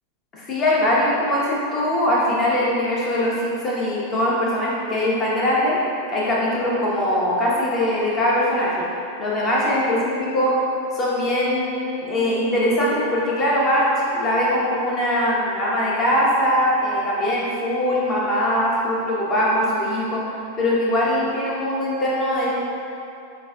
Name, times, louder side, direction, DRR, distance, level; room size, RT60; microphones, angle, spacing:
voice 1, 0.3-5.8 6.1-8.9 9.2-10.7 10.9-20.2 20.6-22.5, left 1 dB, 25° left, -6 dB, 0.8 m, -21 dB
5.1 x 2.5 x 2.3 m, 2.8 s
figure-of-eight pair, 90°, 0 cm